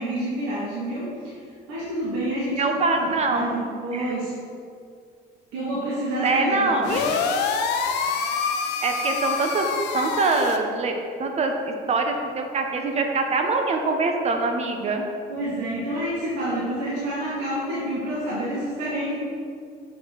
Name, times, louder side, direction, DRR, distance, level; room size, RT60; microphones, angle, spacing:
voice 1, 0.0-1.3 1.7-4.3 5.5-6.9 15.3-19.2, right 1 dB, 85° right, -8 dB, 1.4 m, -28 dB
voice 2, 2.6-3.5 3.9-4.1 6.2-7.2 8.8-9.7 9.9-15.0, right 3 dB, 40° right, 3 dB, 0.7 m, -24 dB
sound 1, 6.8-10.6, left 5 dB, 80° left, 0.6 m, -26 dB
6.3 x 3.2 x 5.8 m, 2.3 s
cardioid pair, 110°, 17 cm